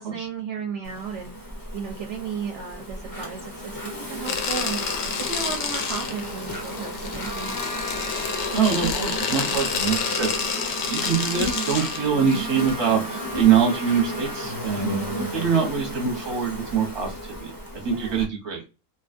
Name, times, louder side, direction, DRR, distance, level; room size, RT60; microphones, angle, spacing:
voice 1, 0.0-1.3 1.7-4.8 5.2-7.6 14.8-15.3 17.9-18.2, right 6 dB, 65° right, 1 dB, 0.8 m, -34 dB
Insect, 0.8-18.2, equal, 30° left, 0.3 m, -34 dB
sound 1, 4.2-12.7, left 6 dB, 65° left, 0.7 m, -29 dB
Trumpet, 7.2-14.6, equal, 10° left, 0.9 m, -39 dB
voice 2, 8.5-15.0 15.3-18.6, right 7 dB, 25° right, 0 dB, 0.7 m, -24 dB
2.6 x 2.3 x 2.5 m, 0.29 s
omnidirectional pair, 1.5 m